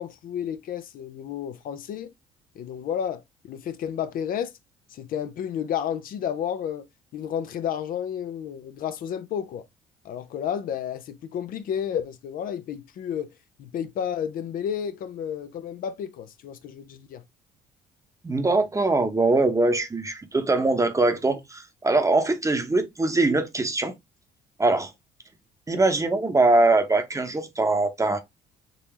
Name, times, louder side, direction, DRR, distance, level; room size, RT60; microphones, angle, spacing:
voice 1, 0.0-2.1 2.6-4.5 4.9-6.9 7.1-9.7 10.0-13.3 13.6-17.2, left 9 dB, 55° left, 0.5 m, -31 dB
voice 2, 18.2-23.9 24.6-24.9 25.7-28.2, right 2 dB, 20° right, 0.8 m, -22 dB
3.8 x 2.7 x 3.0 m
hypercardioid pair, 60°, 17 cm